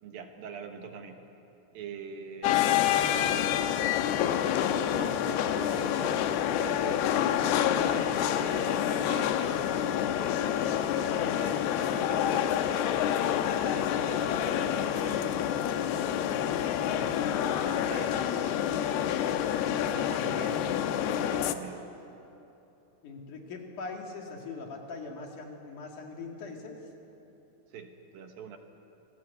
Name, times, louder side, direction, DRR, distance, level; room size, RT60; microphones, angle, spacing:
voice 1, 0.0-1.3 1.7-2.9 4.9-9.6 11.4-15.6 16.9-18.7 18.9-19.5 19.8-21.8 27.7-28.6, right 6 dB, 70° right, 5 dB, 2.9 m, -45 dB
sound 1, 2.4-21.5, left 10 dB, 90° left, 2.9 m, -28 dB
voice 2, 23.0-26.8, left 4 dB, 55° left, 1 dB, 3.5 m, -41 dB
27.5 x 19.0 x 8.3 m, 2.9 s
omnidirectional pair, 4.5 m